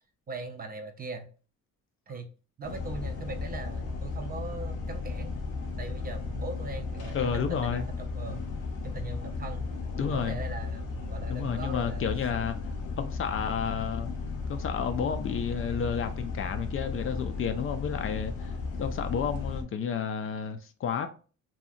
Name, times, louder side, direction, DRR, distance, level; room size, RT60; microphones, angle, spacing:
voice 1, 0.3-1.3 2.1-2.3 2.6-5.3 5.8-8.4 8.8-9.7 10.0-12.2, right 3 dB, 30° right, 0.4 m, -40 dB
sound 1, 2.6-19.6, left 4 dB, 90° left, 0.7 m, -35 dB
voice 2, 7.1-7.9 10.0-10.4 11.3-12.6 13.0-14.1 14.5-21.1, left 7 dB, 45° left, 0.4 m, -31 dB
2.8 x 2.3 x 2.5 m
cardioid pair, 90°, 30 cm